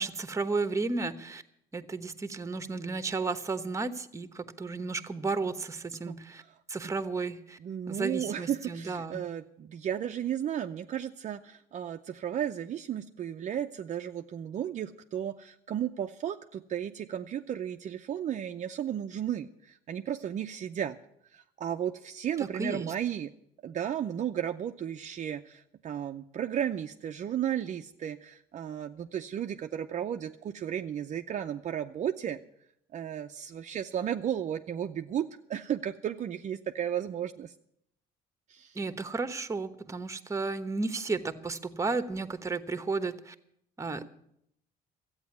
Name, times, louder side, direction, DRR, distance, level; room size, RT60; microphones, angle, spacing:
voice 1, 0.0-1.4 1.7-6.4 6.7-7.6 7.9-9.2 22.4-22.9 38.7-43.3 43.8-44.1, right 3 dB, 15° right, 11 dB, 1.0 m, -33 dB
voice 2, 6.0-6.5 7.6-21.0 21.3-23.3 23.6-32.4 32.9-37.5 38.5-38.8, right 10 dB, 45° right, 6 dB, 0.6 m, -34 dB
13.5 x 8.8 x 9.5 m, 0.73 s
cardioid pair, 110°, 17 cm